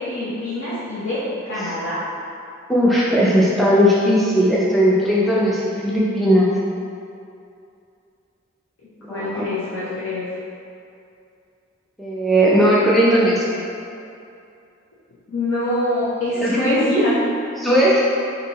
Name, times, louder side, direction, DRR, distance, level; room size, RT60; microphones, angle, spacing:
voice 1, 0.0-2.1 9.1-10.2 15.3-17.2, left 1 dB, 75° left, -10 dB, 0.6 m, -24 dB
voice 2, 2.7-6.5 9.1-9.5 12.0-13.6 16.4-16.7 17.6-18.0, equal, ahead, -8 dB, 0.4 m, -17 dB
4.1 x 2.7 x 2.7 m, 2.6 s
head